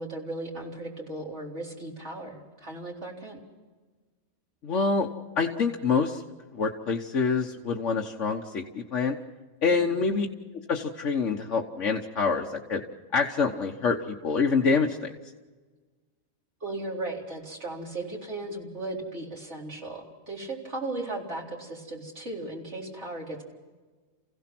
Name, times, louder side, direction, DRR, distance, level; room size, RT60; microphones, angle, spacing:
voice 1, 0.0-3.4 9.9-10.0 16.6-23.4, right 2 dB, 60° right, -2 dB, 4.3 m, -36 dB
voice 2, 4.6-5.1 5.4-6.2 6.5-9.2 9.6-10.3 10.7-12.8 13.1-15.1, left 4 dB, 70° left, 1 dB, 1.5 m, -26 dB
29.5 x 16.5 x 6.1 m, 1.3 s
omnidirectional pair, 1.3 m